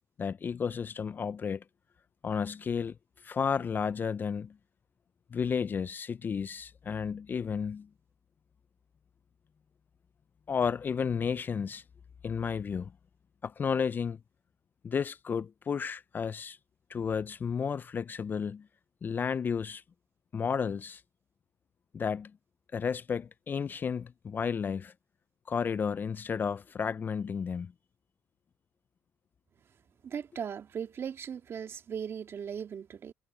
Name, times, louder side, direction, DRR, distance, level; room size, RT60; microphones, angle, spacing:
voice 1, 0.2-1.6 2.2-3.0 3.2-4.6 5.3-7.9 10.5-11.8 12.2-12.9 13.4-14.2 14.8-16.6 16.9-18.7 19.0-19.8 20.3-21.0 21.9-22.3 22.7-24.9 25.5-27.7, left 6 dB, 35° left, 0.4 m, -32 dB
voice 2, 30.0-33.1, right 7 dB, 45° right, 1.9 m, -38 dB
supercardioid pair, 90°, 6 cm